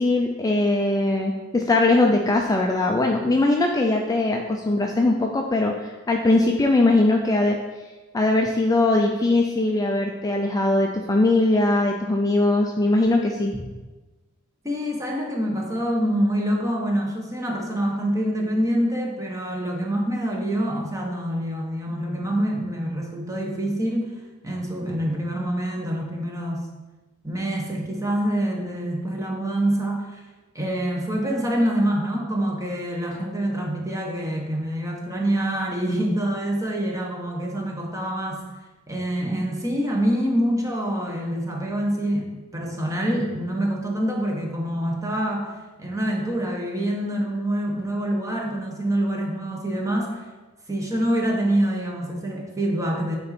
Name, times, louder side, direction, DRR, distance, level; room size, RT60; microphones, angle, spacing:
voice 1, 0.0-7.6 8.1-13.6, left 2 dB, 15° left, 1 dB, 0.4 m, -21 dB
voice 2, 14.6-26.7 27.2-30.2 30.5-38.4 38.9-45.5 45.8-50.2 50.7-53.2, right 1 dB, 15° right, 0 dB, 1.1 m, -26 dB
8.7 x 4.0 x 4.2 m, 1.2 s
head